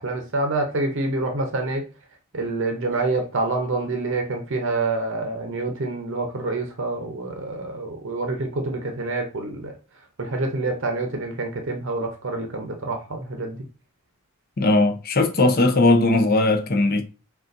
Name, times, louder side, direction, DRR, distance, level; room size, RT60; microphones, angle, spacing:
voice 1, 0.0-1.8 2.3-9.7 10.2-13.6, right 2 dB, 55° right, 0.7 m, -27 dB
voice 2, 14.6-17.0, left 2 dB, 45° left, 0.7 m, -18 dB
6.4 x 2.4 x 2.6 m
head